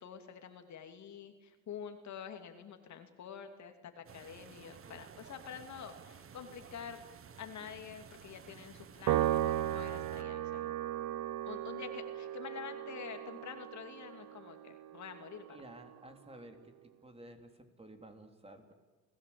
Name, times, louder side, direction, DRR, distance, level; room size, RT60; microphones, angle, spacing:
voice 1, 0.0-7.0 7.4-10.7 11.4-15.6, left 7 dB, 60° left, 6 dB, 2.7 m, -47 dB
sound 1, 4.1-10.2, right 7 dB, 40° right, 1.4 m, -54 dB
Piano, 9.1-15.6, right 12 dB, 65° right, 0.9 m, -36 dB
voice 2, 15.5-18.7, right 1 dB, 20° right, 5 dB, 3.3 m, -53 dB
29.0 x 16.5 x 8.6 m, 1.3 s
cardioid pair, 90°, 32 cm